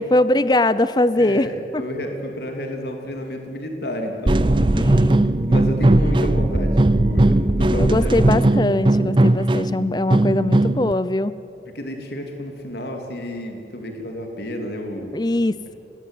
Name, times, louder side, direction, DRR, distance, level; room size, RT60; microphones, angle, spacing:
voice 1, 0.0-1.5 1.7-1.8 4.7-5.3 7.8-11.4 15.1-15.7, left 1 dB, 25° left, 15 dB, 0.6 m, -21 dB
voice 2, 1.1-4.9 5.2-8.4 11.7-15.2, equal, 65° left, 3 dB, 3.1 m, -31 dB
sound 1, 4.3-10.9, right 1 dB, 30° right, 0.6 m, -18 dB
27.5 x 20.0 x 9.2 m, 2.8 s
head